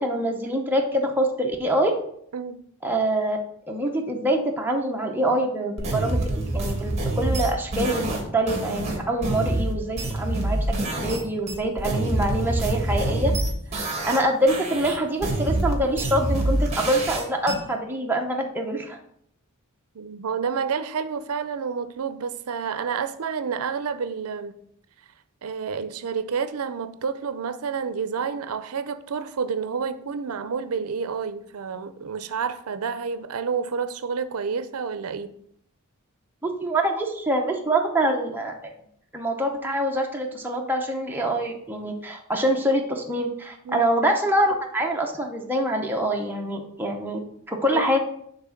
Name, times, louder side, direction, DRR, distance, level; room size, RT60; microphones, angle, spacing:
voice 1, 0.0-1.9 2.8-3.4 3.7-10.6 11.0-13.3 14.1-19.0 36.4-38.7 39.1-47.2 47.5-48.0, right 1 dB, 10° right, 0 dB, 0.7 m, -25 dB
sound 1, 5.8-11.2 11.5-14.2 14.5-17.5, right 2 dB, 30° right, 1.4 m, -26 dB
voice 2, 19.9-24.5 25.4-35.3 43.6-43.9 47.7-47.8, right 6 dB, 75° right, 13 dB, 0.5 m, -29 dB
5.9 x 3.5 x 5.8 m, 0.70 s
head